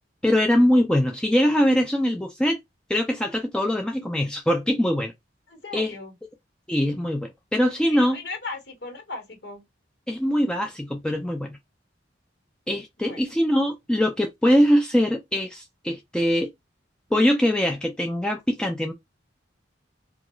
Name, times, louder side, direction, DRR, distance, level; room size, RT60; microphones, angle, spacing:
voice 1, 0.2-2.6 2.9-5.1 5.7-5.9 6.7-8.2 10.1-11.6 12.7-16.5 17.1-18.9, equal, 5° left, 0.3 m, -22 dB
voice 2, 5.5-6.1 7.9-9.6 13.1-13.2, left 3 dB, 65° left, 1.1 m, -37 dB
2.3 x 2.3 x 2.9 m
head